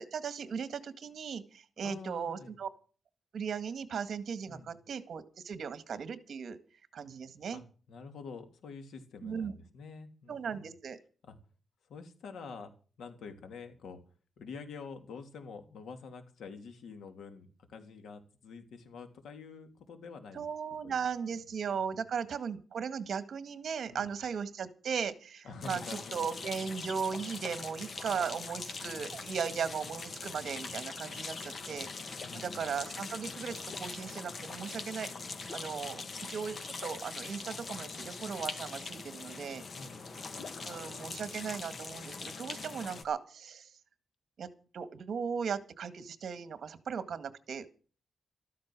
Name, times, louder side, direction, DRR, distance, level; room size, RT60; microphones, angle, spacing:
voice 1, 0.0-2.7 3.3-6.6 6.9-7.6 9.2-9.5 10.3-11.0 20.3-36.0 36.3-39.6 40.6-43.7 44.4-44.5 44.7-47.7, right 6 dB, 60° right, 11 dB, 1.9 m, -37 dB
voice 2, 1.8-2.6 4.5-4.7 7.5-10.7 11.2-11.4 11.9-12.7 13.0-14.0 14.4-20.4 20.8-21.0 21.3-21.4 21.7-22.1 23.9-24.2 25.4-26.3 26.6-26.8 28.5-29.3 32.2-32.7 35.9-36.1 39.8-40.0, left 4 dB, 85° left, 6 dB, 3.0 m, -47 dB
sound 1, 25.6-43.0, left 4 dB, 45° left, 1.8 m, -42 dB
13.5 x 13.5 x 6.2 m, 0.38 s
wide cardioid pair, 125°, 0 cm